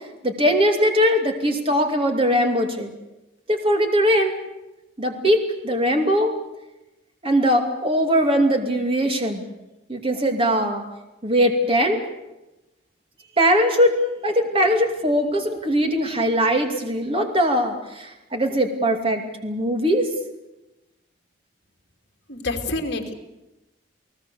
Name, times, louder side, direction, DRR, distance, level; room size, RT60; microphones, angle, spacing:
voice 1, 0.2-2.9 3.5-4.3 5.0-6.3 7.2-9.4 9.9-10.8 11.2-12.0 13.4-20.1, equal, 30° right, 4 dB, 2.6 m, -20 dB
voice 2, 22.3-23.1, left 2 dB, 60° left, 3 dB, 2.9 m, -27 dB
29.0 x 18.5 x 7.0 m, 0.99 s
head